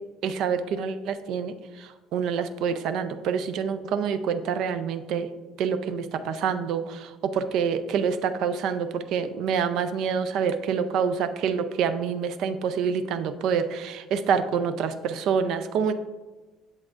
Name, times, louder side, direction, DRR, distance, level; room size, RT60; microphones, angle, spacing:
voice 1, 0.2-5.3 5.6-15.9, right 6 dB, 60° right, 10 dB, 0.5 m, -27 dB
8.3 x 7.5 x 2.5 m, 1.2 s
cardioid pair, 145°, 0 cm